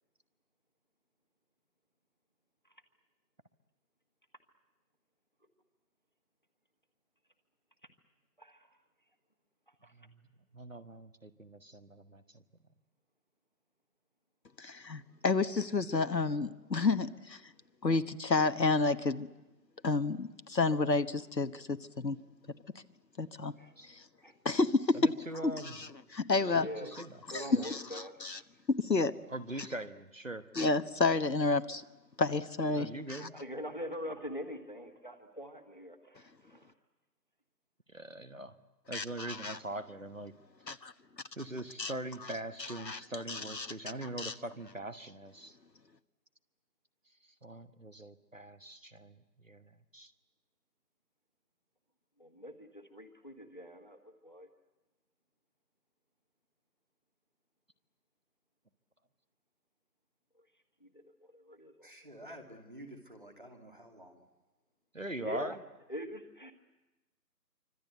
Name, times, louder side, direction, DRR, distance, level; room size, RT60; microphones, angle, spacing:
voice 1, 8.4-8.8 9.8-9.9 23.6-23.7 24.2-24.3 26.5-27.0 27.3-28.4 33.1-36.7 52.2-54.5 60.8-61.9 65.2-65.6 65.9-66.5, equal, 30° left, 1.5 m, -44 dB
voice 2, 10.5-12.4 23.8-23.9 24.9-25.8 26.4-27.1 27.5-27.7 29.3-30.5 32.7-33.3 37.9-38.5 38.9-40.3 41.4-45.6 47.4-49.1 49.4-49.6 49.9-50.1 64.9-65.5, right 1 dB, 50° right, 1.3 m, -42 dB
voice 3, 14.6-17.4 17.8-19.3 19.8-22.2 23.2-23.5 23.9-24.0 24.4-25.1 25.4-26.7 27.3-28.4 28.7-29.1 30.5-31.8 32.2-33.3 38.9-39.6 40.7-40.9 41.8-41.9 42.6-43.0 43.3-43.7 44.0-44.3, left 3 dB, 80° left, 1.3 m, -30 dB
voice 4, 61.8-64.2, equal, 30° right, 2.3 m, -50 dB
26.5 x 25.0 x 8.1 m
figure-of-eight pair, 175°, 50 cm